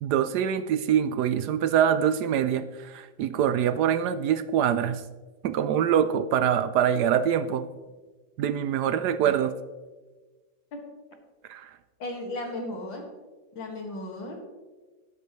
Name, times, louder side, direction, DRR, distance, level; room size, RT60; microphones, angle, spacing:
voice 1, 0.0-5.0 5.4-7.7 8.4-9.6 11.5-11.7, right 9 dB, 75° right, 13 dB, 1.0 m, -24 dB
voice 2, 12.0-13.1 13.5-14.4, left 1 dB, 90° left, 1 dB, 2.7 m, -35 dB
13.5 x 11.0 x 3.1 m, 1.3 s
omnidirectional pair, 2.0 m